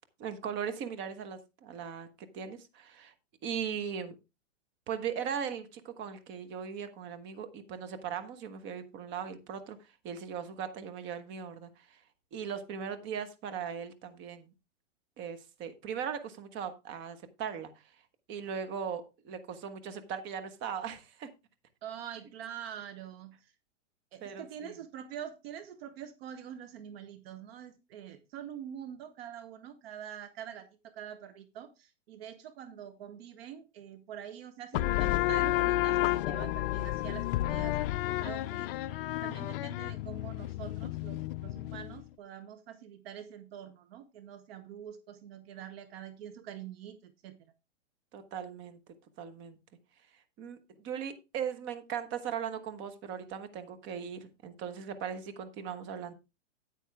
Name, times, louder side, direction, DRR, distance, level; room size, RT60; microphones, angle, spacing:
voice 1, 0.2-3.1 3.4-4.1 4.9-12.0 12.3-14.5 15.2-17.9 18.3-21.3 24.2-24.8 48.1-48.8 49.2-49.6 50.1-56.1, right 7 dB, 30° right, 9 dB, 1.3 m, -39 dB
voice 2, 21.8-23.5 24.1-38.7 39.2-47.4, right 9 dB, 55° right, 11 dB, 1.1 m, -45 dB
sound 1, 34.7-42.0, left 16 dB, 50° left, 0.4 m, -31 dB
9.2 x 9.1 x 3.4 m, 0.26 s
hypercardioid pair, 135°, 37 cm